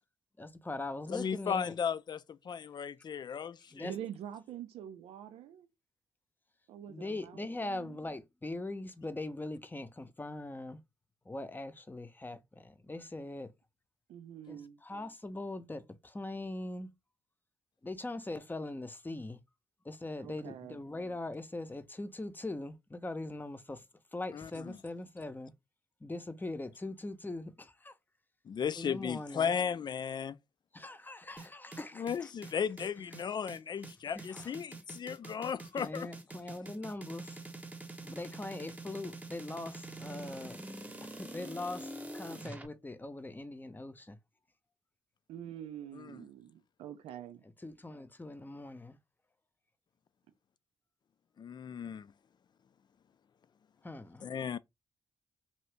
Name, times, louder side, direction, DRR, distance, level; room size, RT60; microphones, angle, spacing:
voice 1, 0.4-1.7 3.7-3.9 6.9-10.8 11.2-13.5 14.5-16.9 17.8-19.4 19.8-23.8 24.1-25.5 26.0-27.9 28.8-29.6 30.7-32.3 34.1-34.5 35.8-37.4 38.0-40.6 41.0-44.2 47.6-49.0 53.8-54.2, left 2 dB, 20° left, 0.7 m, -41 dB
voice 2, 1.1-3.9 24.3-24.8 28.4-30.4 32.0-36.1 45.9-46.2 51.4-52.1 54.2-54.6, left 7 dB, 45° left, 0.4 m, -36 dB
voice 3, 3.8-5.7 6.7-8.0 14.1-14.8 20.2-20.8 45.3-47.4, right 10 dB, 75° right, 0.5 m, -46 dB
sound 1, 31.4-42.7, right 2 dB, 15° right, 0.9 m, -45 dB
2.7 x 2.7 x 3.4 m
hypercardioid pair, 45°, 10 cm